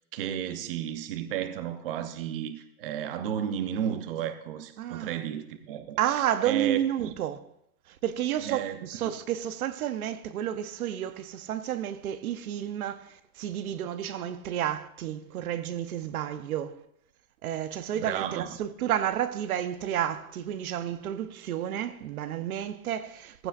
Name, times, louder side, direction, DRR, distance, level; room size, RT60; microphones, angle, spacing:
voice 1, 0.1-6.0 6.4-7.1 8.4-9.1 17.9-18.6, right 9 dB, 40° right, 0.8 m, -33 dB
voice 2, 4.8-5.2 6.0-7.4 7.9-16.8 17.4-23.5, right 11 dB, 80° right, 0.9 m, -31 dB
16.0 x 15.5 x 2.5 m
supercardioid pair, 180°, 43 cm